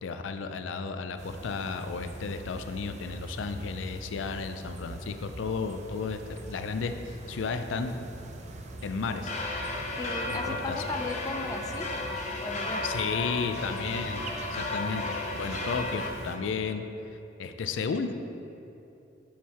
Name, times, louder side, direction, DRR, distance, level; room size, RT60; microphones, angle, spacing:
voice 1, 0.0-8.0 8.8-9.3 10.3-10.8 12.8-16.8 17.4-18.1, left 5 dB, 85° left, 8 dB, 0.4 m, -33 dB
sound 1, 1.2-16.4, right 2 dB, 40° right, 0.5 m, -43 dB
sound 2, 9.1-16.1, left 2 dB, 40° left, 0.7 m, -34 dB
voice 2, 10.0-11.9 12.4-12.8, left 3 dB, 20° left, 4 dB, 0.3 m, -36 dB
7.4 x 4.6 x 4.2 m, 2.9 s
head